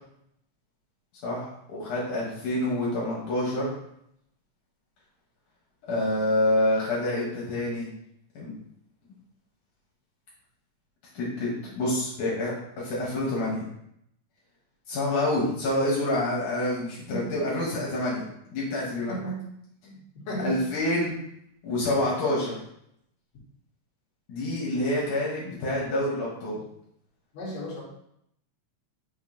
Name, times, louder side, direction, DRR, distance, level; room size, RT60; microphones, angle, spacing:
voice 1, 1.2-3.7 5.9-7.9 8.4-8.5 11.1-13.6 14.9-19.2 20.4-21.1 21.6-22.6 24.3-26.6, left 1 dB, 75° left, -5 dB, 2.9 m, -27 dB
voice 2, 19.8-20.6 27.3-27.8, right 1 dB, 60° left, -4 dB, 3.0 m, -34 dB
6.0 x 5.7 x 3.0 m, 0.74 s
omnidirectional pair, 3.6 m